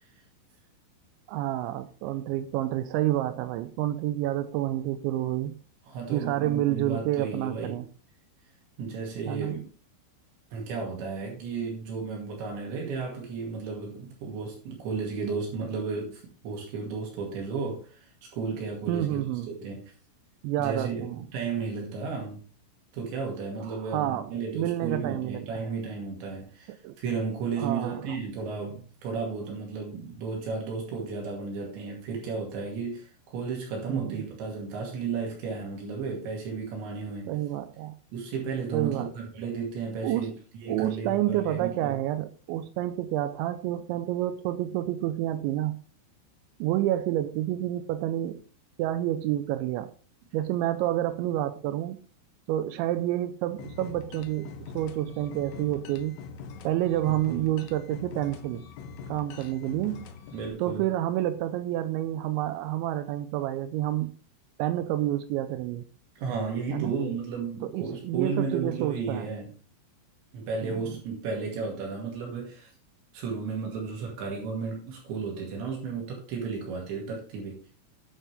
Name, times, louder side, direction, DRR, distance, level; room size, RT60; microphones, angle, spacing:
voice 1, 1.3-5.5 6.1-7.9 9.3-9.6 18.9-19.5 20.4-21.2 23.7-25.5 26.8-26.9 27.6-28.0 33.9-34.2 37.3-38.0 38.7-39.1 40.0-40.3 40.7-45.8 46.6-48.4 48.8-49.9 50.3-52.0 52.5-54.5 54.8-56.2 56.6-58.6 59.1-60.0 60.6-64.1 64.6-65.8 66.7-66.9 67.6-69.3 70.6-70.8, right 13 dB, 90° right, 2.6 m, -29 dB
voice 2, 5.9-7.8 8.8-9.7 10.5-19.8 20.6-22.4 22.9-37.3 38.1-40.4 40.6-42.0 57.3-57.4 60.3-60.8 66.2-69.5 70.3-72.7 73.1-77.6, right 5 dB, 65° right, 4.3 m, -33 dB
sound 1, 53.6-60.5, left 5 dB, 75° left, 2.6 m, -43 dB
9.9 x 9.1 x 3.4 m
omnidirectional pair, 5.9 m